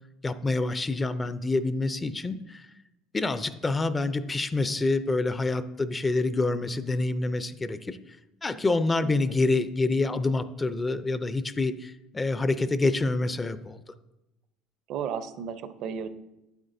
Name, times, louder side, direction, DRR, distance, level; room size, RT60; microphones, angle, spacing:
voice 1, 0.2-2.7 3.1-8.0 8.4-13.8, left 3 dB, 15° left, 13 dB, 0.4 m, -27 dB
voice 2, 14.9-16.1, right 7 dB, 60° right, 11 dB, 0.6 m, -34 dB
8.8 x 8.0 x 2.6 m, 0.93 s
cardioid pair, 120°, 0 cm